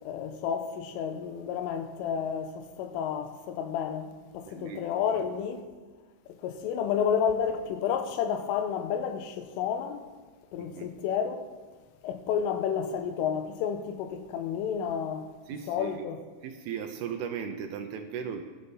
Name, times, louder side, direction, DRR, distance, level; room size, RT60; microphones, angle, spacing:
voice 1, 0.0-5.7 6.3-10.1 10.5-11.5 12.0-15.3 15.7-16.2, left 7 dB, 90° left, 3.5 m, -31 dB
voice 2, 4.5-4.8 5.1-5.2 10.6-10.9 15.5-16.0 16.4-18.4, right 7 dB, 85° right, 2.3 m, -37 dB
23.0 x 8.1 x 4.1 m
omnidirectional pair, 5.6 m